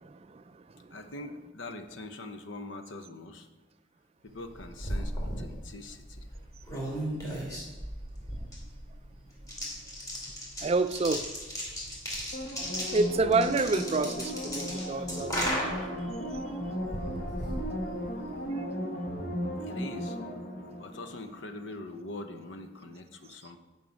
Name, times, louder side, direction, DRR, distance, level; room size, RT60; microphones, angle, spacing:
voice 1, 0.9-3.5 4.2-6.3 14.8-15.0 19.6-20.2 20.8-23.6, left 2 dB, 80° left, 0.8 m, -43 dB
sound 1, 4.4-18.4, equal, 20° left, 2.4 m, -37 dB
voice 2, 10.6-11.2 12.9-15.6, right 3 dB, 30° right, 0.4 m, -27 dB
sound 2, 12.3-21.7 22.1-22.2, equal, 50° left, 1.2 m, -36 dB
9.4 x 5.6 x 5.2 m
head